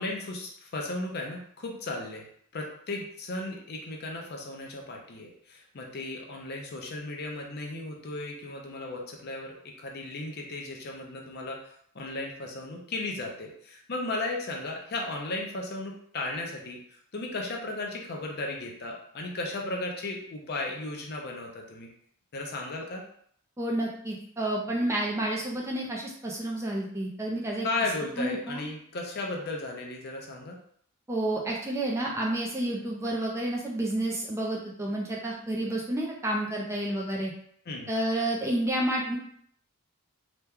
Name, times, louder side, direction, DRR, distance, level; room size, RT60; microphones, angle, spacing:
voice 1, 0.0-2.3 2.5-11.6 11.9-16.8 17.1-21.9 22.3-23.0 27.6-30.6 37.7-37.9, left 2 dB, 45° left, 1 dB, 0.6 m, -35 dB
voice 2, 23.6-27.7 28.2-28.7 31.1-37.3 37.9-39.2, right 1 dB, 15° right, -2 dB, 0.4 m, -30 dB
2.9 x 2.2 x 3.4 m, 0.64 s
head